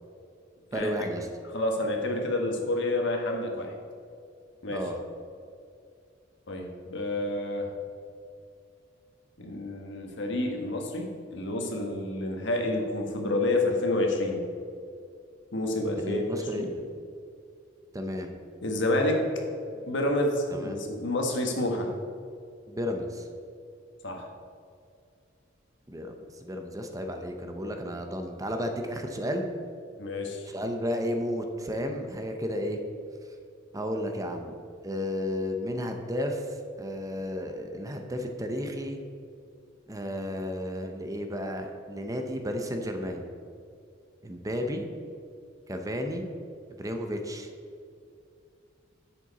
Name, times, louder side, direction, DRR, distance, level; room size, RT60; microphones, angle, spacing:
voice 1, 0.7-1.3 4.7-5.0 16.0-16.9 17.9-18.3 20.5-20.8 22.7-23.3 25.9-26.1 26.4-29.5 30.5-32.8 33.7-34.5 34.8-36.5 36.8-39.0 39.9-43.2 44.2-44.9 45.7-46.3 46.8-47.5, equal, 20° right, 5 dB, 0.7 m, -32 dB
voice 2, 1.5-3.7 4.6-4.9 6.5-7.7 9.4-14.4 15.5-16.7 18.6-19.3 19.9-21.9 24.0-24.3 30.0-30.5, left 1 dB, 65° left, 2 dB, 1.4 m, -29 dB
10.5 x 7.6 x 4.1 m, 2.4 s
head